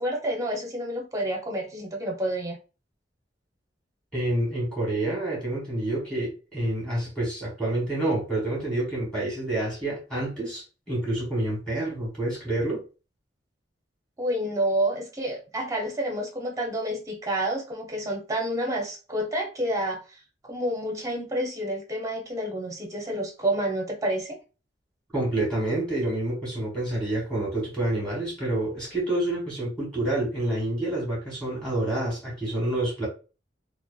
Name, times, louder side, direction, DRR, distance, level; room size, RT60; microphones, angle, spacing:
voice 1, 0.0-2.6 14.2-20.0 20.4-24.4, right 1 dB, 20° right, 0.6 m, -29 dB
voice 2, 4.1-12.8 25.1-33.1, right 1 dB, 5° left, 1.3 m, -28 dB
2.8 x 2.1 x 2.3 m
head